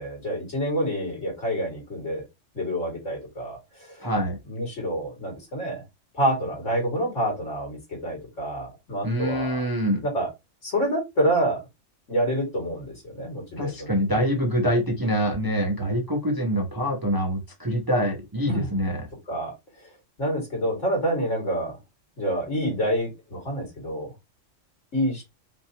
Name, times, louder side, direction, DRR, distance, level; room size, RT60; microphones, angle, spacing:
voice 1, 0.0-2.3 2.5-4.1 4.5-5.8 6.1-9.6 10.0-10.3 10.6-11.7 12.1-14.3 18.5-18.7 19.3-19.5 20.2-21.8 22.2-24.1 24.9-25.2, right 1 dB, 75° left, -1 dB, 2.7 m, -27 dB
voice 2, 4.0-4.4 9.0-10.0 13.6-19.1, equal, 20° right, 2 dB, 0.7 m, -25 dB
5.4 x 2.7 x 2.8 m, 0.22 s
omnidirectional pair, 1.3 m